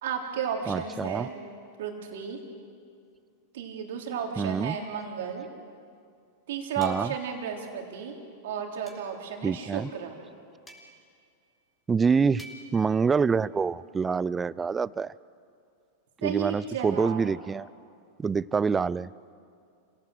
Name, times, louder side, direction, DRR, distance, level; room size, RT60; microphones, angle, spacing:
voice 1, 0.0-1.4 1.8-2.4 3.5-5.5 6.5-8.2 8.4-10.2 16.2-17.3, right 7 dB, 70° right, 2 dB, 3.6 m, -33 dB
voice 2, 0.7-1.3 4.4-4.8 6.8-7.1 9.4-9.9 11.9-12.4 12.7-15.1 16.2-17.7 18.2-19.1, right 5 dB, 20° right, 20 dB, 0.5 m, -26 dB
sound 1, 6.8-7.3 8.9-9.2 10.7-11.2 12.4-12.9, equal, 10° left, 4.0 m, -49 dB
27.5 x 17.0 x 8.0 m, 2.3 s
hypercardioid pair, 100°, 0 cm